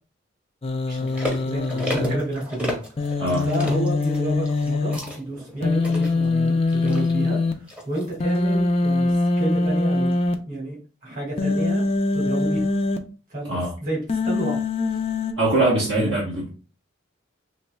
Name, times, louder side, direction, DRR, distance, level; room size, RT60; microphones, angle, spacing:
Human voice, 0.6-2.2 3.0-5.0 5.6-7.5 8.2-10.3 11.4-13.0 14.1-15.3, left 3 dB, 30° left, 0.4 m, -23 dB
voice 1, 0.9-2.8 3.4-10.1 10.5-11.8 12.1-12.6 13.3-14.6 16.0-16.2, right 1 dB, 40° right, 1.8 m, -30 dB
sound 1, 1.0-8.3 8.8-8.9, equal, 5° right, 0.8 m, -34 dB
voice 2, 15.4-16.5, right 2 dB, 65° right, 1.1 m, -22 dB
4.2 x 3.1 x 2.2 m
head